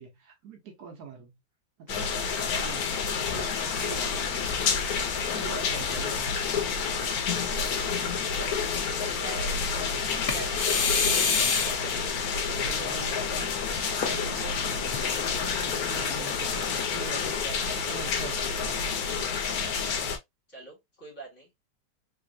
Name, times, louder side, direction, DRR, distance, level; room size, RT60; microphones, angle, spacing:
voice 1, 0.0-1.4 1.8-4.6 5.0-6.4 12.5-13.5 14.0-17.4 17.7-18.8, right 5 dB, 65° right, 1.2 m, -44 dB
sound 1, 1.9-20.2, left 6 dB, 65° left, 1.1 m, -29 dB
sound 2, 3.6-6.2 6.7-6.8 7.5-8.2 10.3-12.0 13.9-16.8, left 5 dB, 85° left, 0.4 m, -32 dB
voice 2, 8.3-12.1 12.5-13.3 17.1-17.8 20.5-21.5, right 2 dB, 40° left, 2.0 m, -45 dB
3.3 x 3.0 x 2.5 m
omnidirectional pair, 1.9 m